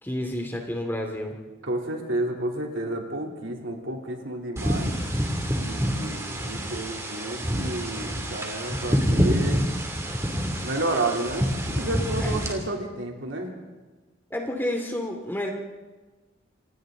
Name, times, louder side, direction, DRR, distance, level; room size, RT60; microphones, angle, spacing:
voice 1, 0.0-1.4 12.2-12.3 14.3-15.5, left 1 dB, 10° left, 2 dB, 2.4 m, -30 dB
voice 2, 1.6-5.0 5.6-9.6 10.6-13.5, right 2 dB, 75° right, 1 dB, 3.3 m, -31 dB
sound 1, 4.6-12.5, equal, 15° right, 2.8 m, -27 dB
28.0 x 26.5 x 3.9 m, 1.2 s
head